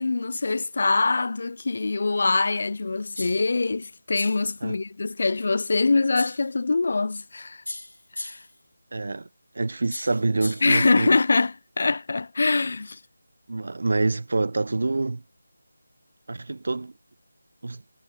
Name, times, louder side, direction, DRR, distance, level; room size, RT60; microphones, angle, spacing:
voice 1, 0.0-7.6 8.2-8.4 10.6-13.0, left 3 dB, 50° left, 0.3 m, -24 dB
sound 1, 3.2-3.5 4.2-4.5 6.2-6.5 7.7-8.6 9.9-10.8, left 1 dB, 75° left, 1.7 m, -37 dB
voice 2, 8.9-9.3 9.5-11.2 13.5-15.2 16.3-16.9 17.6-17.8, right 3 dB, 55° right, 0.6 m, -26 dB
figure-of-eight pair, 160°, 0 cm